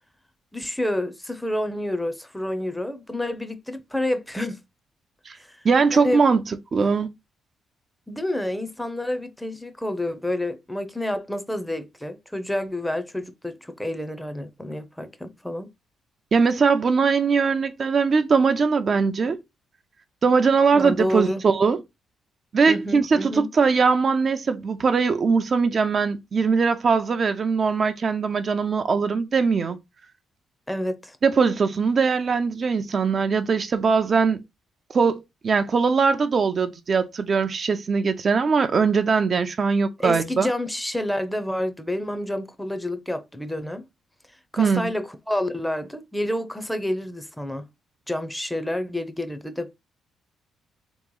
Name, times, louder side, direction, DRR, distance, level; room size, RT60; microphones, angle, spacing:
voice 1, 0.5-4.6 5.4-5.6 5.9-6.2 8.1-15.7 20.7-21.4 22.7-23.5 30.7-31.2 40.0-43.9 44.5-47.7 48.1-49.7, left 1 dB, 5° left, 0.7 m, -29 dB
voice 2, 5.6-7.1 16.3-19.4 20.2-21.8 22.5-29.8 31.2-34.4 34.9-40.5 44.6-44.9, right 5 dB, 45° right, 0.5 m, -21 dB
3.5 x 3.0 x 3.8 m
cardioid pair, 90°, 0 cm